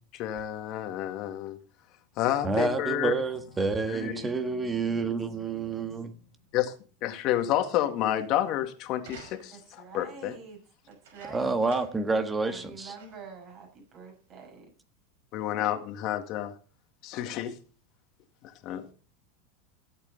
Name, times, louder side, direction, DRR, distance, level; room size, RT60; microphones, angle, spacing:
voice 1, 0.2-1.6 2.2-3.1 3.9-4.1 6.5-6.7 7.0-10.3 15.3-16.5 17.0-17.5 18.6-18.9, left 12 dB, 50° left, 7 dB, 2.0 m, -29 dB
voice 2, 2.4-6.1 11.3-12.9, right 3 dB, 15° right, 8 dB, 1.5 m, -28 dB
Animal, 2.9-6.9, left 7 dB, 75° left, 3.4 m, -53 dB
voice 3, 3.9-4.3 4.9-5.1 5.4-6.0 9.5-10.6 10.9-11.6 12.5-14.7, right 4 dB, 40° right, 2 dB, 6.6 m, -45 dB
sound 1, 9.0-9.8 10.9-12.1 12.5-12.6 12.9-13.4 14.2-14.3, right 6 dB, 80° right, 5.4 m, -51 dB
16.0 x 8.2 x 4.0 m, 0.38 s
supercardioid pair, 130°, 0 cm